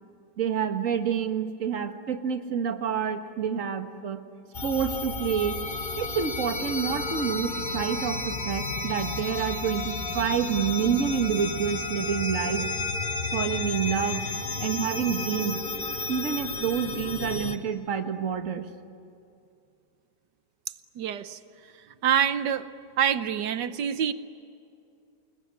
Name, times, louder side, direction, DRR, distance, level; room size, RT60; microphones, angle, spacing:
voice 1, 0.4-4.2 4.6-5.6 6.0-12.7 13.3-14.3 14.6-15.6 16.1-18.7, right 7 dB, 50° right, 7 dB, 1.8 m, -28 dB
sound 1, 4.5-17.6, left 3 dB, 35° left, 1.2 m, -32 dB
voice 2, 20.9-21.4 21.8-22.7 23.0-24.1, right 9 dB, 80° right, 13 dB, 1.5 m, -26 dB
28.5 x 21.0 x 9.9 m, 2.5 s
omnidirectional pair, 1.9 m